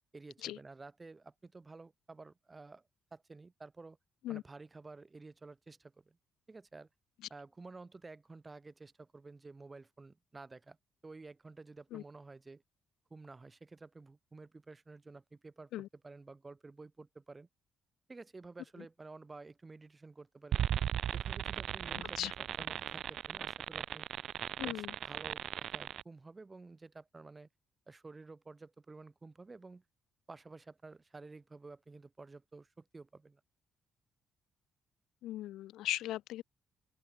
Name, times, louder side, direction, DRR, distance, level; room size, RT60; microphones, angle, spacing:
voice 1, 0.1-2.8 3.1-4.0 4.3-6.2 6.5-6.9 7.3-10.8 11.0-12.6 13.1-15.7 16.0-17.5 18.1-20.6 21.1-22.2 22.6-24.1 24.6-27.5 27.9-29.8 30.3-33.4, right 3 dB, 25° right, 0.9 m, -52 dB
sound 1, 20.5-26.0, right 10 dB, 65° right, 0.4 m, -37 dB
voice 2, 24.6-24.9 35.2-36.4, left 14 dB, 85° left, 0.3 m, -38 dB
open air
cardioid pair, 90°, 0 cm